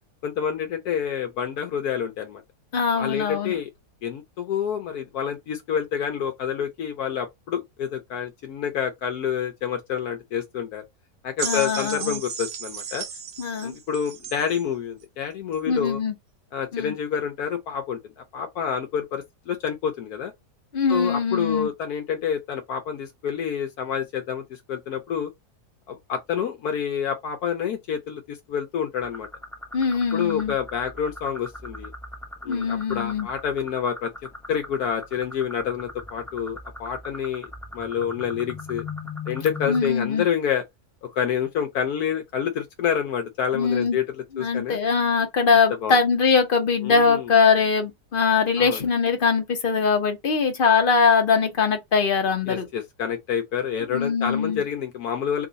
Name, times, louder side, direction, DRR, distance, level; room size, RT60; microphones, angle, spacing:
voice 1, 0.2-2.4 3.0-3.7 4.0-10.8 11.2-13.0 13.6-16.0 16.5-20.3 20.9-25.3 25.9-29.3 30.1-31.9 32.4-34.1 34.5-37.5 37.7-38.8 39.3-40.6 41.0-44.8 45.8-46.0 46.8-47.3 48.6-48.8 52.5-55.5, left 8 dB, 75° left, 1.1 m, -28 dB
voice 2, 2.7-3.6 11.4-12.2 13.4-13.7 15.7-16.1 16.7-16.9 20.7-21.7 29.7-30.5 32.5-33.3 39.7-40.2 43.5-44.0 44.3-52.7 53.9-54.6, left 5 dB, 40° left, 0.9 m, -22 dB
sound 1, 11.4-14.7 15.5-15.6, right 7 dB, 85° right, 1.4 m, -34 dB
sound 2, 29.0-39.9, left 3 dB, 5° left, 0.4 m, -39 dB
3.0 x 2.6 x 3.9 m
omnidirectional pair, 1.7 m